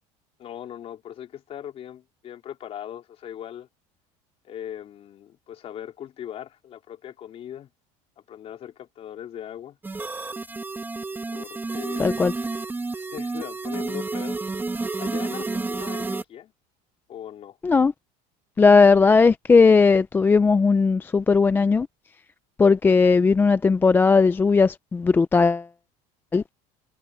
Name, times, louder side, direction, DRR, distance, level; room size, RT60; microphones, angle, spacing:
voice 1, 0.4-3.7 4.4-7.7 8.2-9.8 11.3-12.2 13.0-14.4 15.0-16.0 16.3-16.5 17.1-17.6, left 10 dB, 40° left, 3.7 m, -39 dB
sound 1, 9.8-16.2, right 3 dB, 10° right, 1.7 m, -30 dB
voice 2, 12.0-12.3 17.6-17.9 18.6-21.9 22.6-25.7 26.3-26.4, left 4 dB, 15° left, 0.4 m, -17 dB
cardioid pair, 145°, 16 cm